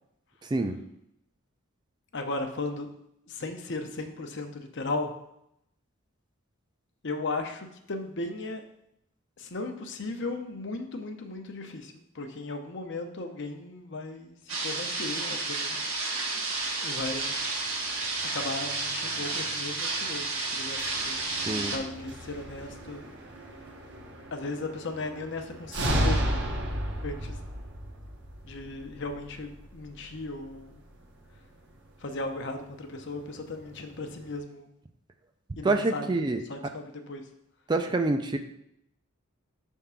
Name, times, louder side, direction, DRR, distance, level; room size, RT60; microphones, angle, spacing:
voice 1, 2.1-2.9 3.3-5.1 7.0-8.6 9.4-15.9 16.8-17.3 18.3-21.2 21.7-23.0 24.3-26.4 27.0-27.4 28.4-30.8 32.0-34.7 35.6-36.0 36.5-37.2, left 2 dB, 55° left, 5 dB, 0.7 m, -36 dB
sound 1, 14.5-21.8, right 3 dB, 70° right, 1.3 m, -31 dB
sound 2, 17.0-34.4, equal, 55° right, 0.9 m, -36 dB
voice 2, 35.6-36.4 37.7-38.4, right 2 dB, 20° right, 6 dB, 0.4 m, -26 dB
5.8 x 3.6 x 5.5 m, 0.78 s
head